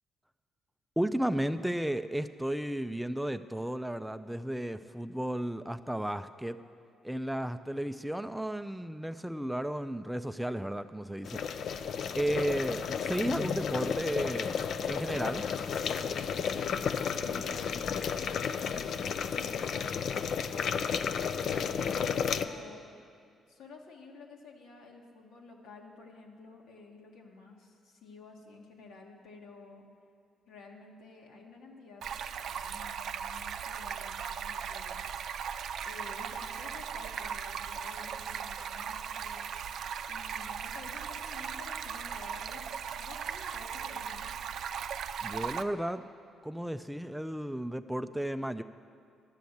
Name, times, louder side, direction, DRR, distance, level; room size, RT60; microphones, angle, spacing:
voice 1, 1.0-6.6 7.0-11.4 12.2-15.5 45.2-46.1 46.4-48.6, right 1 dB, 5° right, 10 dB, 0.3 m, -33 dB
sound 1, 11.3-22.5, left 7 dB, 65° left, 0.4 m, -32 dB
voice 2, 17.2-22.9 23.5-29.8 30.5-32.1 32.4-35.0 35.8-39.5 40.1-44.3, left 3 dB, 80° left, 0 dB, 1.6 m, -51 dB
Stream, 32.0-45.6, right 7 dB, 70° right, 0.4 m, -38 dB
11.5 x 7.0 x 7.9 m, 2.4 s
cardioid pair, 90°, 0 cm